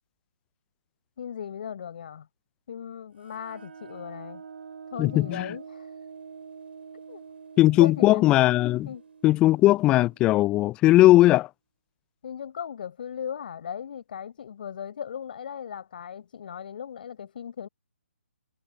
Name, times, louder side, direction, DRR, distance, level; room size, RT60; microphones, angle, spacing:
voice 1, 1.2-2.3 2.7-4.4 4.9-5.9 7.1-7.2 7.8-8.3 8.8-9.0 12.2-17.7, left 8 dB, 45° left, 4.9 m, -37 dB
sound 1, 3.2-10.6, right 6 dB, 55° right, 7.0 m, -46 dB
voice 2, 5.0-5.5 7.6-8.9 9.2-11.5, left 16 dB, 15° left, 0.4 m, -19 dB
figure-of-eight pair, 140°, 7 cm